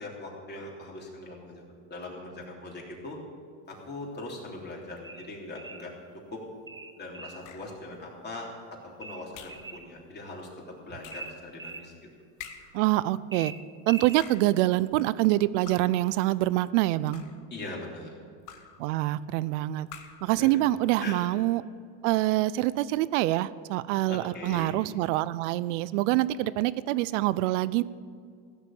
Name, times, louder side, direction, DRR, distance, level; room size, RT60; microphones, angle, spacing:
voice 1, 0.0-1.6 1.9-3.2 3.7-5.9 6.3-6.4 7.0-8.5 9.0-12.1 17.5-18.1 20.4-20.6 21.0-21.2 24.1-24.8, left 2 dB, 25° left, -2 dB, 3.4 m, -41 dB
sound 1, 5.0-5.9 6.7-7.5 9.0-9.9 11.1-11.9 13.3-14.2, right 3 dB, 10° right, 0.8 m, -41 dB
sound 2, 7.4-7.8 9.3-9.7 11.0-11.4 12.4-12.9 14.0-14.6 15.7-16.1 16.9-17.5 18.5-18.9 19.9-20.3, left 8 dB, 55° left, 1.4 m, -47 dB
voice 2, 12.7-13.5 13.9-17.2 18.8-19.9 20.2-21.6 22.0-27.8, right 16 dB, 70° right, 18 dB, 0.6 m, -25 dB
15.5 x 6.8 x 8.6 m, 2.2 s
supercardioid pair, 115°, 37 cm